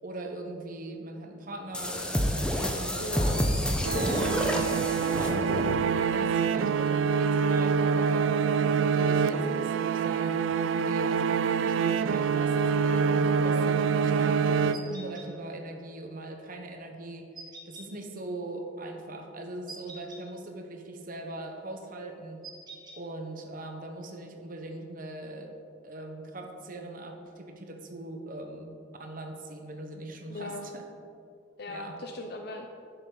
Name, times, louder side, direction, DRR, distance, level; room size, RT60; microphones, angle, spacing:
voice 1, 0.0-3.3 3.8-5.8 6.1-8.3 8.9-12.5 12.8-17.3 17.7-22.4 23.0-25.5 25.8-30.8 31.7-32.0, right 2 dB, 45° right, 4 dB, 1.0 m, -41 dB
sound 1, 1.7-5.9, equal, 5° left, 0.8 m, -29 dB
voice 2, 3.0-3.4 30.3-30.6 31.6-32.7, left 1 dB, 60° left, 3 dB, 0.6 m, -38 dB
sound 2, 3.8-15.3, right 6 dB, 80° right, 0.3 m, -26 dB
sound 3, 14.7-15.3 17.3-17.9 19.7-20.2 22.4-23.0, right 2 dB, 25° right, 1.3 m, -45 dB
11.0 x 6.9 x 3.9 m, 2.5 s
head